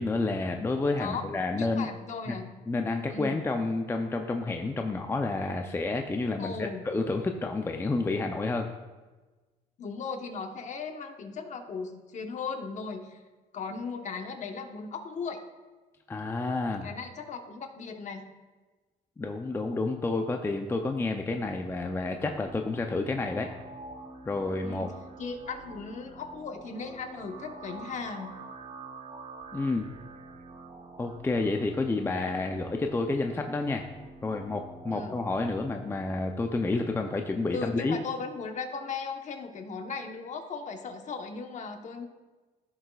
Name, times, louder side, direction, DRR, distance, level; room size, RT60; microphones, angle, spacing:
voice 1, 0.0-1.9 2.3-2.4 2.7-6.5 6.9-8.7 16.1-16.9 19.2-23.5 24.3-24.9 29.5-29.9 31.0-33.8 34.2-38.0, left 3 dB, 15° left, 4 dB, 0.5 m, -30 dB
voice 2, 1.5-2.5 3.1-3.4 6.4-6.8 9.8-13.2 13.5-15.4 16.8-18.2 24.6-24.9 25.2-28.3 34.9-35.2 37.5-42.0, left 4 dB, 45° left, 5 dB, 1.0 m, -37 dB
sound 1, 21.4-36.4, right 3 dB, 40° right, 1.1 m, -47 dB
15.0 x 6.4 x 2.3 m, 1.2 s
cardioid pair, 110°, 17 cm